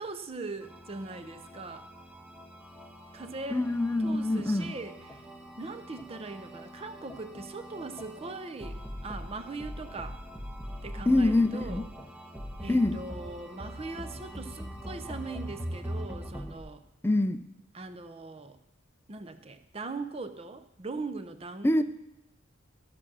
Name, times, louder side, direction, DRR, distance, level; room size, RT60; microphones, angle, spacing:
voice 1, 0.0-1.9 3.1-3.6 4.0-5.2 5.6-10.2 10.8-11.9 12.6-16.8 17.7-18.6 19.1-21.8, right 3 dB, 30° right, 9 dB, 0.6 m, -40 dB
sound 1, 0.6-16.6, equal, 5° right, 1.0 m, -42 dB
voice 2, 3.5-4.7 11.1-11.8 12.7-13.0 17.0-17.4 21.6-21.8, left 2 dB, 10° left, 11 dB, 0.4 m, -25 dB
13.5 x 6.1 x 6.1 m, 0.90 s
head